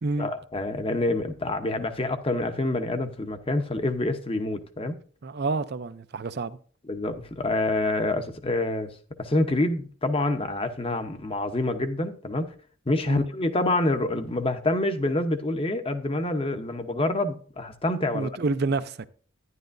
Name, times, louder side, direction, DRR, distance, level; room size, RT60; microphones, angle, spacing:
voice 1, 0.2-5.0 6.9-8.9 9.2-12.5 12.9-18.3, left 2 dB, 25° left, 0.8 m, -27 dB
voice 2, 5.2-6.6 13.1-13.2 18.1-19.1, right 3 dB, 50° right, 0.5 m, -28 dB
11.0 x 10.5 x 2.6 m
head